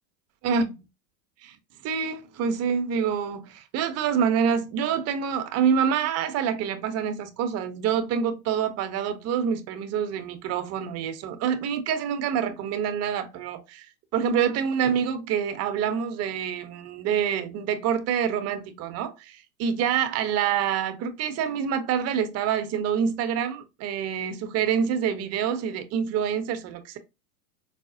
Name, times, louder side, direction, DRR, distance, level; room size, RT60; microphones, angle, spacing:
voice 1, 0.4-0.7 1.4-1.6 1.8-13.9 14.1-27.0, right 7 dB, 30° right, 0.6 m, -26 dB
4.7 x 2.0 x 2.5 m
hypercardioid pair, 110°, 49 cm